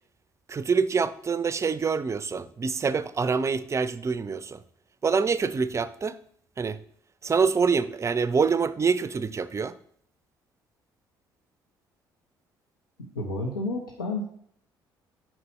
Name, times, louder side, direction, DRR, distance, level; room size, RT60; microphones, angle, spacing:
voice 1, 0.5-4.6 5.0-6.2 6.6-6.8 7.2-9.7, right 5 dB, 25° right, 0.4 m, -25 dB
voice 2, 13.1-14.2, left 2 dB, 80° left, 0.7 m, -30 dB
5.8 x 4.0 x 5.4 m
figure-of-eight pair, 50°, 11 cm